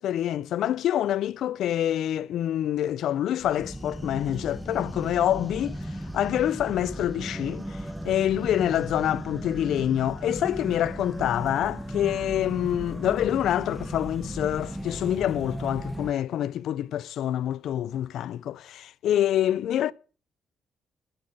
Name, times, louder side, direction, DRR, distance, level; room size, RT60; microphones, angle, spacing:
voice 1, 0.0-5.8 6.1-19.9, left 11 dB, 75° left, 0.5 m, -26 dB
sound 1, 3.4-16.1, equal, 5° right, 1.3 m, -36 dB
9.6 x 8.1 x 7.6 m
cardioid pair, 90°, 0 cm